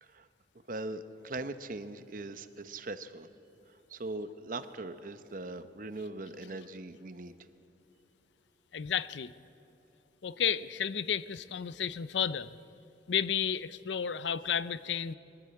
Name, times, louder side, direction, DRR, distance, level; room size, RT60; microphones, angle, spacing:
voice 1, 0.7-3.3 3.9-7.3, right 2 dB, 50° right, 11 dB, 0.8 m, -40 dB
voice 2, 8.7-9.3 10.2-12.5 13.1-15.1, left 8 dB, 90° left, 16 dB, 0.6 m, -32 dB
22.0 x 14.0 x 8.7 m, 2.9 s
head